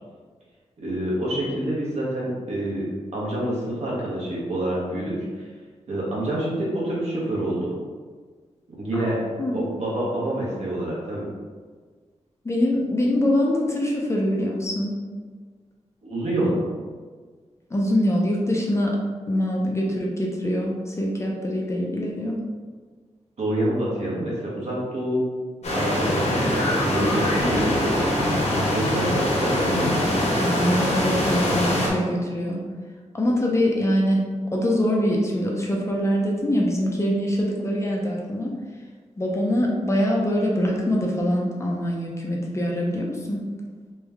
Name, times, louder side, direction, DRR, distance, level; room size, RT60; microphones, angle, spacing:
voice 1, 0.8-2.8 3.1-5.5 5.9-7.7 8.7-9.2 9.5-11.2 16.0-16.6 23.4-25.2 25.7-30.2, right 1 dB, 65° right, -5 dB, 1.2 m, -27 dB
voice 2, 9.0-9.6 12.4-14.9 17.7-19.0 19.3-22.4 30.1-32.6 33.1-34.2 34.5-38.5 39.2-43.4, equal, 25° left, -2 dB, 0.5 m, -24 dB
sound 1, 25.6-31.9, left 1 dB, 65° left, 1.2 m, -23 dB
3.2 x 3.0 x 3.5 m, 1.5 s
wide cardioid pair, 175°, 12 cm